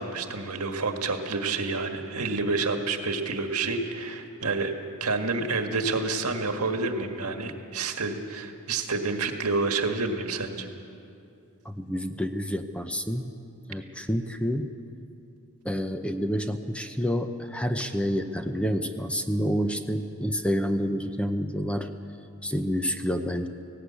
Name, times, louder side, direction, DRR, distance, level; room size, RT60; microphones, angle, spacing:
voice 1, 0.0-4.7 5.0-10.7, right 3 dB, 75° right, 5 dB, 1.7 m, -29 dB
voice 2, 11.6-13.3 13.7-14.7 15.6-21.9 22.4-23.5, equal, 5° left, 7 dB, 0.7 m, -28 dB
18.0 x 17.0 x 8.4 m, 2.6 s
head